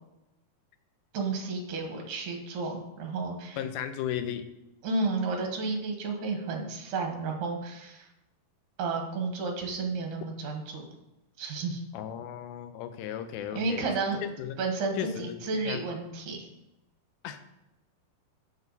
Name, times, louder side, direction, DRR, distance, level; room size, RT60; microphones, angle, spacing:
voice 1, 1.1-3.6 4.8-8.1 8.8-10.8 11.4-11.8 13.5-14.2 14.6-16.5, right 3 dB, 65° right, 2 dB, 2.6 m, -32 dB
voice 2, 3.6-4.5 11.9-13.9 14.2-14.6 15.0-15.4 15.7-15.8 17.2-17.4, left 10 dB, 80° left, 9 dB, 2.5 m, -35 dB
7.2 x 6.5 x 4.0 m, 0.93 s
omnidirectional pair, 4.3 m